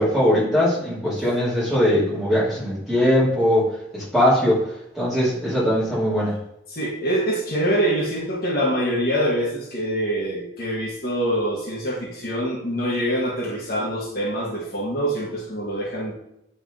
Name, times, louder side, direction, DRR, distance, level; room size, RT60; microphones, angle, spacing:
voice 1, 0.0-4.6 4.9-6.4, equal, ahead, -9 dB, 2.5 m, -20 dB
voice 2, 6.7-16.1, equal, 50° left, -3 dB, 1.3 m, -25 dB
8.8 x 3.3 x 3.8 m, 0.80 s
head